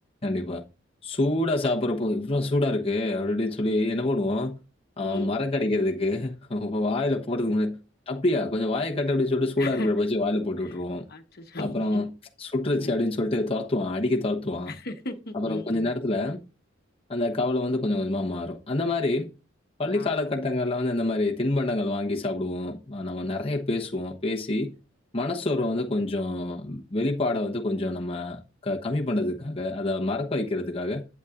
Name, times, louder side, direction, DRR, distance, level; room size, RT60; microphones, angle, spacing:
voice 1, 0.2-0.6 1.0-4.6 5.0-7.8 8.1-11.1 11.6-12.1 12.4-14.7 15.3-16.4 17.1-19.3 19.8-24.7 25.1-31.1, left 2 dB, 30° left, 1.0 m, -27 dB
voice 2, 5.0-5.4 7.5-7.6 9.6-9.9 11.1-12.0 12.7-12.9 14.7-15.9 19.9-20.4 25.6-25.7, left 2 dB, 55° left, 1.2 m, -37 dB
11.5 x 8.0 x 2.5 m
head